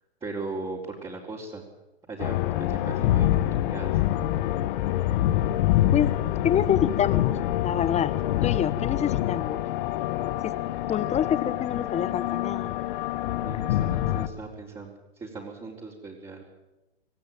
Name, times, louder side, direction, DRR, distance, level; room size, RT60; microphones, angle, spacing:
voice 1, 0.2-1.6 2.1-4.0 13.4-14.9 15.2-16.4, right 3 dB, 15° right, -4 dB, 4.5 m, -38 dB
sound 1, 2.2-14.3, left 13 dB, 55° left, 1.6 m, -26 dB
voice 2, 6.4-7.4 7.6-8.1 8.4-9.6 10.4-10.5 10.9-12.7, left 9 dB, 20° left, 15 dB, 1.3 m, -26 dB
26.0 x 17.0 x 9.2 m, 1.0 s
hypercardioid pair, 105°, 32 cm